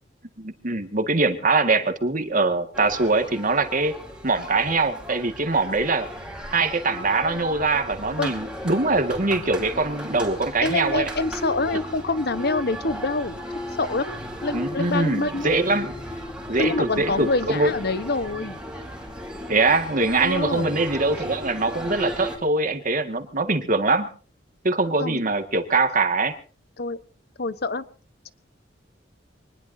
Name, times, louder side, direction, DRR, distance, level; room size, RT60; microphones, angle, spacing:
voice 1, 0.4-3.9 4.2-6.1 6.5-11.1 14.5-15.9 16.5-17.7 19.5-24.1 24.6-26.3, right 3 dB, 45° right, 7 dB, 1.9 m, -23 dB
sound 1, 2.7-22.4, equal, 5° right, 4.3 m, -35 dB
voice 2, 10.6-13.4 13.8-15.5 16.6-18.6 20.2-20.7 25.0-25.2 26.8-27.0 27.4-27.8 28.2-28.3, left 3 dB, 60° left, 13 dB, 1.1 m, -26 dB
24.5 x 20.0 x 2.8 m, 0.39 s
head